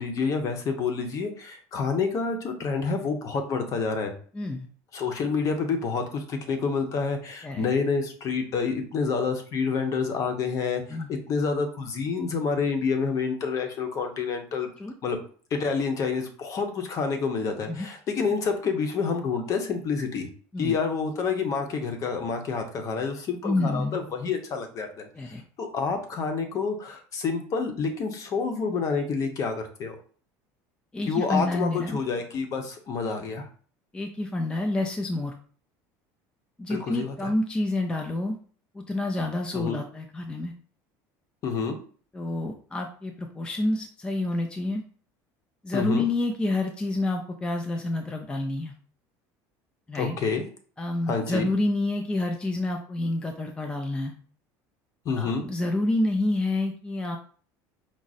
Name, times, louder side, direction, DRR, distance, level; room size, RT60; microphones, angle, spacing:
voice 1, 0.0-4.1 4.9-14.7 15.0-15.2 15.5-20.3 20.6-29.9 31.1-33.5 36.7-37.1 39.5-39.8 41.4-41.8 45.7-46.1 49.9-50.4 51.1-51.4 55.0-55.4, left 5 dB, 45° left, 6 dB, 0.9 m, -28 dB
voice 2, 4.3-4.7 7.4-7.6 10.9-11.1 14.8-14.9 17.7-17.9 20.5-20.7 23.4-24.1 25.2-25.4 30.9-32.0 33.9-35.3 36.6-38.4 38.7-40.5 42.1-44.8 45.6-48.7 49.9-50.2 50.8-54.2 55.1-57.2, left 2 dB, 10° left, 2 dB, 0.5 m, -28 dB
4.8 x 2.0 x 4.1 m, 0.44 s
cardioid pair, 130°, 8 cm